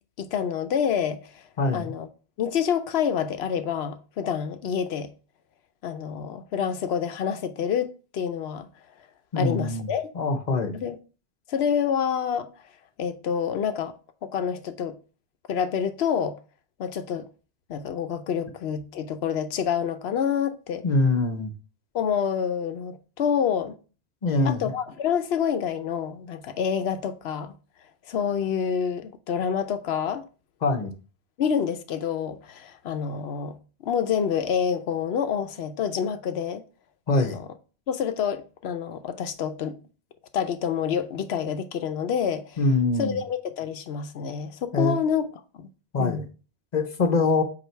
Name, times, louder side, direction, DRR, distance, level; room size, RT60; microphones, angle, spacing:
voice 1, 0.2-1.4 1.7-2.1 2.4-5.1 5.8-8.7 9.4-10.1 10.7-11.0 11.5-12.5 13.0-13.9 14.2-15.0 15.5-16.4 16.8-17.3 17.7-20.8 21.9-23.8 24.4-27.5 28.1-30.2 31.4-33.6 33.8-36.6 37.2-37.5 37.9-39.8 40.3-42.6 43.0-45.2 45.5-45.7 46.0-46.2, left 7 dB, 75° left, 0.9 m, -27 dB
voice 2, 1.6-1.9 9.3-9.9 10.1-10.8 20.8-21.5 24.2-24.7 30.6-30.9 37.1-37.4 42.6-43.2 44.7-45.0 45.9-46.2 46.7-47.4, left 3 dB, 45° left, 0.9 m, -23 dB
8.1 x 2.8 x 4.4 m
omnidirectional pair, 1.1 m